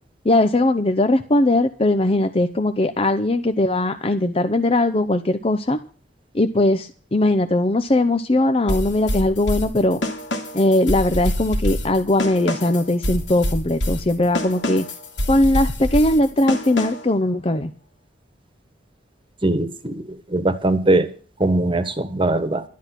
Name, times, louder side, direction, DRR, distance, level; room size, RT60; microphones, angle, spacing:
voice 1, 0.2-5.8 6.3-10.0 10.5-14.8 15.3-17.7, left 1 dB, 30° left, 0.8 m, -19 dB
sound 1, 8.7-17.2, left 1 dB, 85° left, 2.5 m, -26 dB
voice 2, 19.4-21.1 21.4-22.6, right 2 dB, 30° right, 1.4 m, -21 dB
12.5 x 10.5 x 6.0 m
head